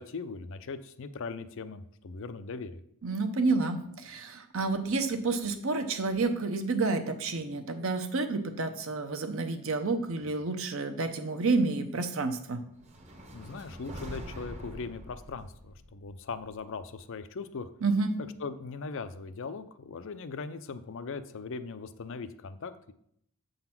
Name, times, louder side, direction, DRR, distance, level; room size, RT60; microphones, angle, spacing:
voice 1, 0.0-2.8 13.3-17.7 18.4-22.9, left 4 dB, 60° left, 11 dB, 0.5 m, -39 dB
voice 2, 3.0-12.6 17.8-18.1, right 3 dB, 60° right, 7 dB, 0.8 m, -29 dB
sound 1, 12.8-17.0, equal, 30° right, 0.9 m, -45 dB
7.7 x 3.9 x 5.9 m, 0.71 s
head